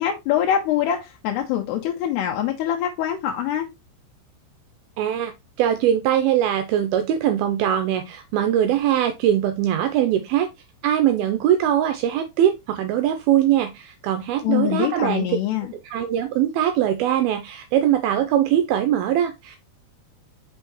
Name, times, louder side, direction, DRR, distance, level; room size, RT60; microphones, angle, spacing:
voice 1, 0.0-3.7 14.4-15.7, left 10 dB, 85° left, 2.8 m, -24 dB
voice 2, 5.0-5.3 5.6-10.5 10.8-15.3 15.9-19.6, right 11 dB, 85° right, 2.2 m, -21 dB
5.9 x 5.5 x 2.9 m
omnidirectional pair, 4.9 m